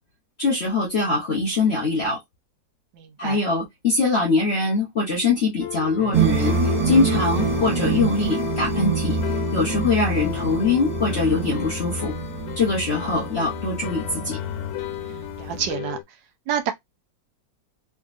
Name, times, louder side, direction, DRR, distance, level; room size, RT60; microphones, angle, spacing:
voice 1, 0.4-2.2 3.2-9.2 9.5-12.1 12.6-14.4, left 3 dB, 50° left, 0.7 m, -23 dB
voice 2, 3.0-3.4 13.2-13.3 15.4-16.0 16.5-16.7, right 9 dB, 75° right, 1.3 m, -28 dB
sound 1, 5.6-16.0, left 13 dB, 85° left, 1.3 m, -33 dB
sound 2, 6.1-15.7, right 4 dB, 55° right, 1.8 m, -26 dB
3.7 x 2.3 x 2.4 m
omnidirectional pair, 2.0 m